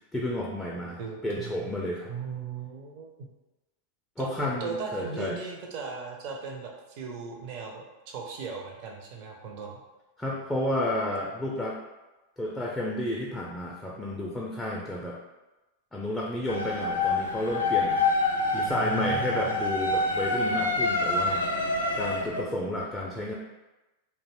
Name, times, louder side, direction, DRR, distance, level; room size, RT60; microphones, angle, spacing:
voice 1, 0.1-2.1 4.2-5.4 10.2-11.8 12.4-15.2 15.9-18.0 18.5-21.4 21.9-23.3, left 1 dB, 10° left, -3 dB, 0.4 m, -31 dB
voice 2, 1.0-1.7 2.1-3.3 4.2-4.3 4.6-9.8 18.4-19.6, right 5 dB, 45° right, 0 dB, 0.5 m, -37 dB
sound 1, 16.5-22.4, left 2 dB, 75° left, 0.4 m, -27 dB
2.5 x 2.2 x 3.2 m, 1.1 s
figure-of-eight pair, 90°, 0 cm